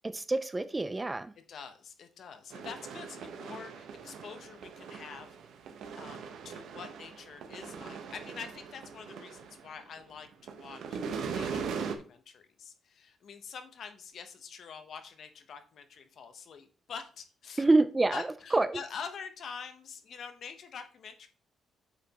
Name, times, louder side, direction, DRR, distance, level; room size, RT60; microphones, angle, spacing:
voice 1, 0.0-1.3 17.6-18.8, right 2 dB, 15° right, 12 dB, 0.3 m, -27 dB
voice 2, 1.5-5.4 5.9-17.7 18.1-21.3, left 6 dB, 50° left, 8 dB, 0.9 m, -46 dB
sound 1, 2.5-10.0 10.3-11.9, right 6 dB, 75° right, 1.0 m, -40 dB
8.2 x 5.7 x 3.0 m, 0.39 s
cardioid pair, 165°, 0 cm